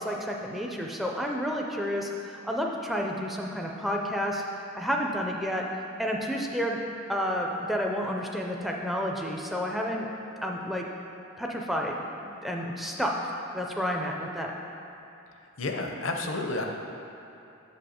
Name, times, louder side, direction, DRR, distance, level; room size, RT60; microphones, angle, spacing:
voice 1, 0.0-4.4 4.7-5.6 6.0-6.8 7.1-10.1 10.4-10.9 11.4-13.1 13.5-14.6, equal, ahead, 0 dB, 0.4 m, -30 dB
voice 2, 15.6-16.7, left 2 dB, 65° left, 3 dB, 0.6 m, -30 dB
6.9 x 5.3 x 4.2 m, 2.7 s
head